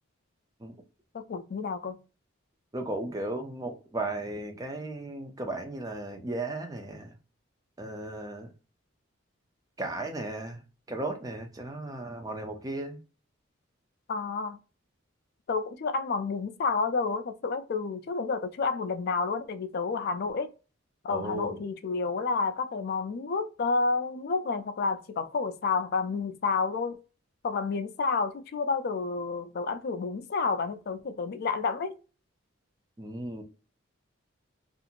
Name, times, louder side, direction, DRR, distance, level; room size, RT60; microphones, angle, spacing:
voice 1, 1.1-2.0 14.1-14.6 15.5-20.5 21.0-27.0 27.4-31.9, left 4 dB, 50° left, 0.4 m, -30 dB
voice 2, 2.7-7.1 7.8-8.5 9.8-10.6 10.9-13.0 21.1-21.5 33.0-33.4, right 2 dB, 20° right, 0.5 m, -35 dB
2.5 x 2.5 x 2.8 m
head